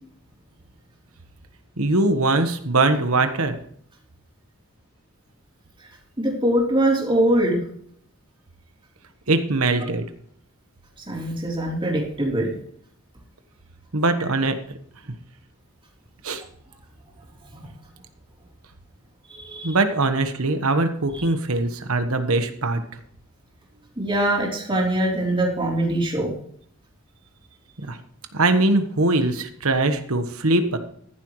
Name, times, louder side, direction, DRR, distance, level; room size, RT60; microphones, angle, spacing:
voice 1, 1.8-3.6 9.3-10.0 13.9-14.5 16.2-16.4 19.6-22.8 27.8-28.0 28.3-30.8, right 2 dB, 75° right, 8 dB, 1.3 m, -21 dB
voice 2, 6.2-7.6 9.8-9.9 11.0-12.5 17.5-17.7 19.3-19.8 21.1-21.3 24.0-26.3, right 1 dB, 25° right, -2 dB, 3.6 m, -23 dB
14.5 x 11.5 x 3.2 m, 0.65 s
head